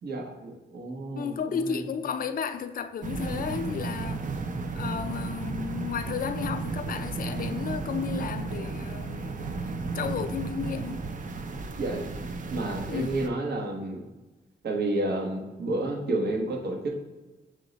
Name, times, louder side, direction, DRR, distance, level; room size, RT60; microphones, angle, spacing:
voice 1, 0.0-1.8 11.8-12.1 12.5-14.0 14.6-16.9, right 2 dB, 65° right, 0.9 m, -30 dB
voice 2, 1.2-4.4 4.7-9.4 9.9-11.0 12.9-13.2, left 7 dB, 55° left, 0.4 m, -33 dB
sound 1, 3.0-13.3, right 3 dB, 45° right, 0.5 m, -34 dB
6.2 x 2.1 x 3.9 m
cardioid pair, 80°, 18 cm